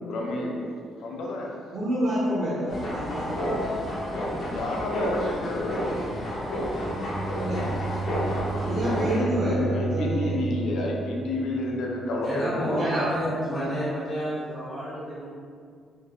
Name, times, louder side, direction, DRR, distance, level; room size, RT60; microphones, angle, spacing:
voice 1, 0.0-1.6 4.2-6.2 8.2-9.3 9.7-12.9, left 2 dB, 80° left, -2 dB, 0.7 m, -31 dB
voice 2, 1.7-3.6 7.4-7.7 8.5-10.3 12.7-13.1, equal, 55° right, -9 dB, 1.0 m, -28 dB
sound 1, 2.7-9.2, equal, 55° left, 1.3 m, -30 dB
Bowed string instrument, 6.7-12.0, right 4 dB, 75° right, 1.3 m, -32 dB
voice 3, 12.2-15.3, equal, 30° left, -11 dB, 1.4 m, -29 dB
4.5 x 3.3 x 2.3 m, 2.1 s
cardioid pair, 90°, 0 cm